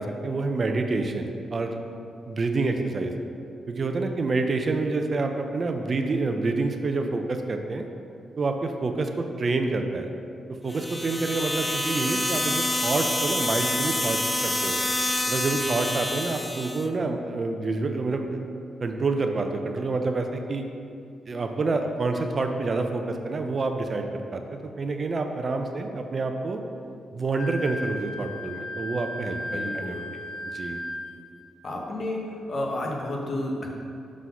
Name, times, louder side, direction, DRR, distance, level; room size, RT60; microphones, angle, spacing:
voice 1, 0.0-1.8 2.3-3.1 3.7-7.9 8.4-10.1 10.6-14.8 15.3-18.4 18.8-20.7 21.3-26.6 27.1-29.4 29.7-30.2 30.5-30.8, right 3 dB, 40° right, 5 dB, 0.5 m, -27 dB
sound 1, 10.7-16.9, left 1 dB, 15° left, 0.5 m, -27 dB
Wind instrument woodwind instrument, 27.4-31.2, left 1 dB, 80° left, 0.5 m, -35 dB
voice 2, 29.5-30.1 31.6-32.2 32.5-33.7, left 1 dB, 50° left, -1 dB, 1.1 m, -31 dB
6.2 x 4.0 x 5.5 m, 2.5 s
cardioid pair, 85°, 0 cm